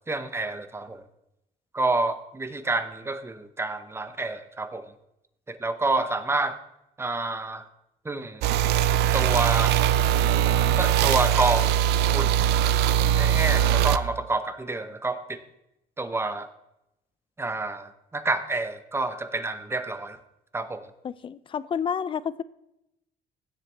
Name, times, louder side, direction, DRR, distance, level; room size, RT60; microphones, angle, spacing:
voice 1, 0.1-1.0 1.7-4.9 5.5-6.6 7.0-7.6 8.0-8.5 9.1-9.8 10.8-11.8 12.1-12.3 13.1-15.4 16.0-16.5 17.4-20.2 20.5-20.8, right 3 dB, 15° right, 11 dB, 0.8 m, -28 dB
sound 1, 8.4-14.0, right 10 dB, 80° right, 0.5 m, -21 dB
voice 2, 21.0-22.4, left 7 dB, 30° left, 18 dB, 0.4 m, -30 dB
16.0 x 7.3 x 3.4 m, 0.86 s
cardioid pair, 110°, 17 cm